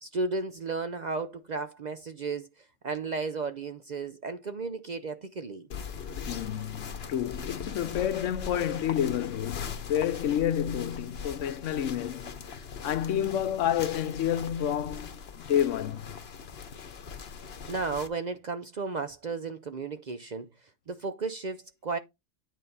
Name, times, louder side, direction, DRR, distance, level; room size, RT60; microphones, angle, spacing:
voice 1, 0.0-2.5 2.8-5.7 17.7-20.5 20.9-22.0, right 4 dB, 50° right, 0.6 m, -34 dB
sound 1, 5.7-18.1, left 6 dB, 60° left, 1.1 m, -41 dB
voice 2, 6.3-12.3 12.8-16.1, left 10 dB, 80° left, 1.0 m, -29 dB
9.1 x 4.1 x 4.0 m
omnidirectional pair, 1.3 m